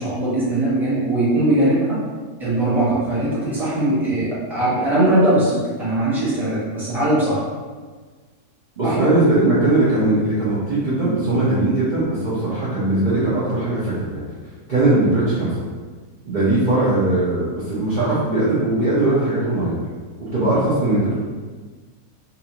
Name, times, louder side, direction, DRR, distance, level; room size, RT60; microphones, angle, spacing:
voice 1, 0.0-2.0 2.4-7.4 8.8-9.0, right 1 dB, ahead, -10 dB, 1.0 m, -20 dB
voice 2, 8.8-14.2 14.7-15.6 16.2-19.8 20.2-21.1, right 2 dB, 40° right, -11 dB, 0.8 m, -19 dB
4.0 x 2.7 x 2.9 m, 1.4 s
omnidirectional pair, 1.6 m